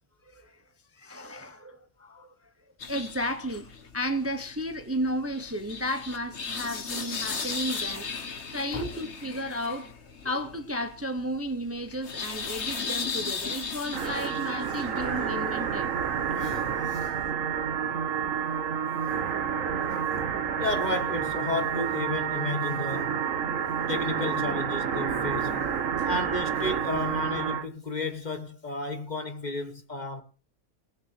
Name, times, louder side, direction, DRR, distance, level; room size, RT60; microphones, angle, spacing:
voice 1, 0.3-0.6 0.9-2.4 2.9-8.1 8.5-9.9 10.2-15.9, equal, 10° right, 0.9 m, -33 dB
sound 1, 2.8-17.3, left 5 dB, 60° left, 1.7 m, -37 dB
sound 2, 13.9-27.7, right 7 dB, 80° right, 1.4 m, -29 dB
voice 2, 14.7-15.3 16.3-17.2 20.6-23.3 23.9-25.7 26.0-30.2, left 2 dB, 35° left, 1.3 m, -33 dB
18.5 x 6.8 x 6.5 m
omnidirectional pair, 1.3 m